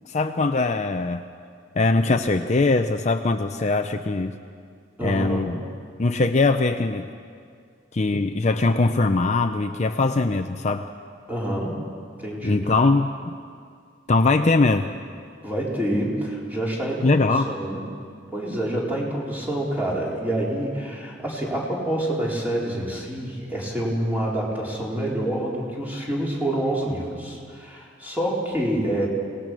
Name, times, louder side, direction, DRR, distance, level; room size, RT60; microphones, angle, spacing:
voice 1, 0.1-1.2 1.7-4.4 5.0-5.6 6.0-7.1 7.9-10.9 12.4-13.4 14.1-14.9 17.0-17.5, left 3 dB, 35° left, 7 dB, 0.6 m, -21 dB
voice 2, 5.0-5.7 11.3-11.8 12.2-12.7 15.4-17.2 17.5-17.8 18.3-29.1, right 1 dB, 10° right, -4 dB, 4.4 m, -27 dB
27.0 x 19.0 x 6.2 m, 2.2 s
head